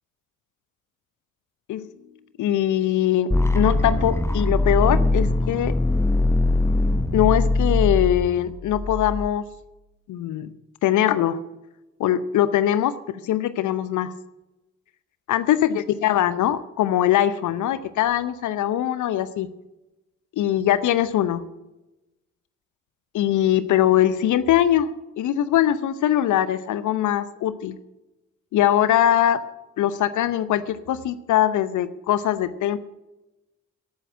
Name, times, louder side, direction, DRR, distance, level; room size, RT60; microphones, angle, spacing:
voice 1, 2.4-5.8 7.1-9.4 10.1-10.5 10.8-11.4 12.0-14.1 15.3-19.5 20.4-21.4 23.1-24.9 25.2-27.8 28.5-29.4 29.8-32.8, left 11 dB, 50° left, 15 dB, 0.8 m, -21 dB
sound 1, 3.3-9.3, left 2 dB, 5° left, 1.1 m, -22 dB
12.0 x 9.1 x 9.0 m, 1.0 s
figure-of-eight pair, 40°, 38 cm